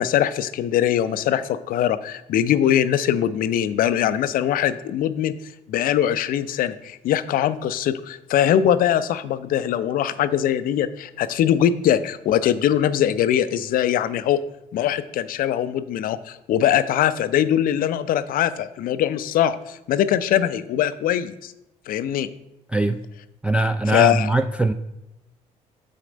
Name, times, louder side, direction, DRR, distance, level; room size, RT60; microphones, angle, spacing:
voice 1, 0.0-5.3 5.7-14.4 14.7-21.5 21.9-22.3 23.9-24.3, left 10 dB, 55° left, 13 dB, 0.5 m, -22 dB
voice 2, 22.7-23.0 23.4-24.7, right 2 dB, 5° right, 6 dB, 0.3 m, -21 dB
7.7 x 4.1 x 5.1 m, 0.88 s
hypercardioid pair, 50°, 17 cm